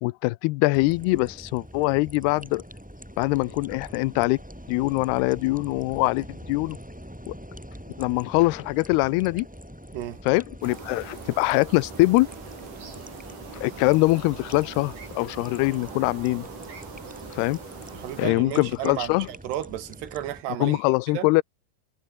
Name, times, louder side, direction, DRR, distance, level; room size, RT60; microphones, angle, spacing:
voice 1, 0.0-2.6 3.2-4.4 4.7-6.8 7.3-7.4 8.0-9.5 10.3-12.3 13.5-16.5 17.3-17.6 18.2-19.3 20.6-21.4, left 22 dB, 80° left, 2.5 m, -23 dB
sound 1, 0.7-20.4, equal, ahead, 7.5 m, -44 dB
sound 2, 10.6-18.3, right 5 dB, 50° right, 6.8 m, -42 dB
voice 2, 17.9-20.8 21.1-21.3, right 12 dB, 75° right, 3.8 m, -33 dB
omnidirectional pair, 5.0 m